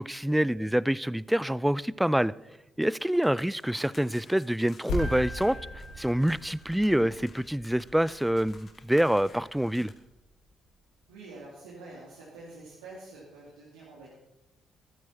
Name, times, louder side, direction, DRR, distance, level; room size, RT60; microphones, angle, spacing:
voice 1, 0.0-2.3 2.8-5.6 6.0-9.9, right 1 dB, 5° right, 22 dB, 0.4 m, -26 dB
sound 1, 2.8-9.9, left 3 dB, 45° left, 2.7 m, -54 dB
sound 2, 4.9-10.6, left 1 dB, 70° left, 4.0 m, -39 dB
Piano, 5.0-7.1, left 1 dB, 25° right, 1.9 m, -45 dB
voice 2, 11.1-14.1, right 2 dB, 75° right, -6 dB, 2.5 m, -47 dB
14.0 x 14.0 x 4.2 m, 0.93 s
figure-of-eight pair, 45°, 0 cm